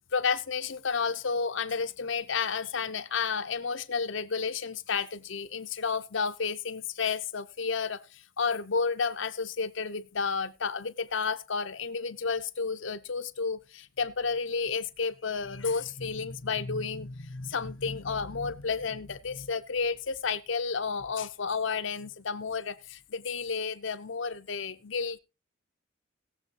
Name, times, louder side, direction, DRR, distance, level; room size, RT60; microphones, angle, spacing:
voice 1, 0.1-25.2, left 5 dB, 65° left, 0.8 m, -31 dB
18.5 x 7.5 x 3.0 m
head